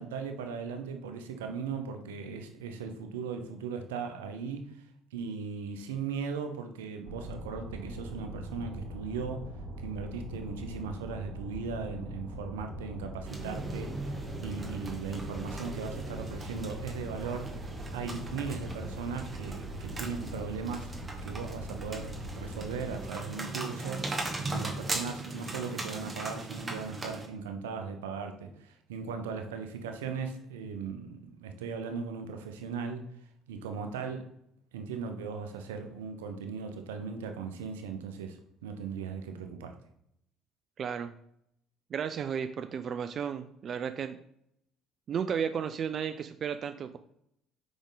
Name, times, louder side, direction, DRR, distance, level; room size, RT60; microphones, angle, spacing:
voice 1, 0.0-9.4 9.8-17.6 17.9-20.9 21.2-33.1 33.5-34.3 34.7-39.7, right 5 dB, 80° right, 6 dB, 0.7 m, -38 dB
sound 1, 7.0-23.1, equal, 65° right, 2.1 m, -41 dB
sound 2, 13.3-27.3, right 2 dB, 25° right, 1.3 m, -39 dB
voice 2, 40.8-41.1 41.9-44.2 45.1-47.0, right 7 dB, 50° right, 9 dB, 0.4 m, -33 dB
5.1 x 5.0 x 3.9 m, 0.75 s
hypercardioid pair, 55°, 0 cm